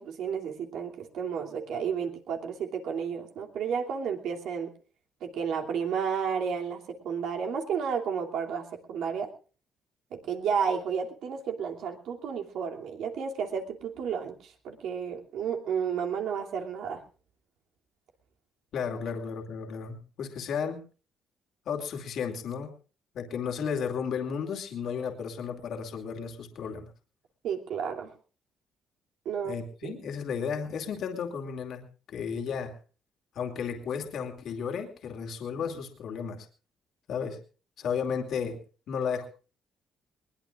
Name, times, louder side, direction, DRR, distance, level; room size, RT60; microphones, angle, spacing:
voice 1, 0.0-4.7 5.2-9.3 10.1-17.0 27.4-28.1 29.2-29.9, right 7 dB, 80° right, 2 dB, 2.8 m, -32 dB
voice 2, 18.7-20.8 21.7-22.7 23.1-26.9 29.4-32.8 33.3-36.5 37.1-37.4 37.8-38.6 38.9-39.3, left 6 dB, 70° left, 3 dB, 2.6 m, -33 dB
22.0 x 21.0 x 2.5 m, 0.37 s
cardioid pair, 115°, 0 cm